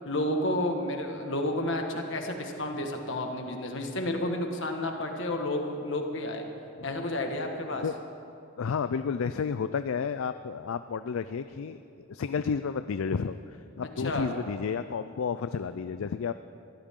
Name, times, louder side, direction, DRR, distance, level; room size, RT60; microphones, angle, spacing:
voice 1, 0.0-6.4 6.8-7.8 14.0-14.3, left 1 dB, 60° left, 3 dB, 1.6 m, -31 dB
voice 2, 8.6-11.8 12.1-16.3, left 6 dB, 75° left, 11 dB, 0.4 m, -31 dB
22.0 x 15.0 x 3.7 m, 2.6 s
head